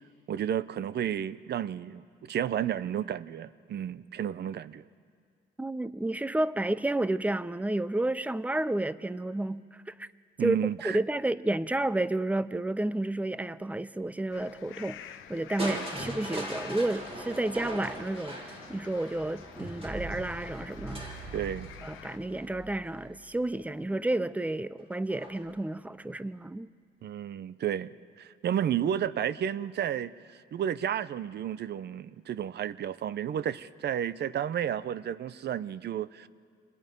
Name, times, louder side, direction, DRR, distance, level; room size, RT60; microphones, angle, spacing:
voice 1, 0.3-4.8 10.4-11.0 15.6-15.8 21.3-21.7 27.0-27.9 28.2-36.3, right 9 dB, 55° right, 0.7 m, -32 dB
voice 2, 5.6-10.1 10.4-10.6 10.8-21.3 21.8-26.7, right 2 dB, 5° right, 0.5 m, -31 dB
sound 1, 14.3-22.2, left 11 dB, 90° left, 0.9 m, -49 dB
Crushing, 15.6-23.5 25.1-25.6 26.1-26.2, right 1 dB, 30° right, 3.9 m, -40 dB
27.5 x 20.5 x 5.3 m
cardioid pair, 90°, 20 cm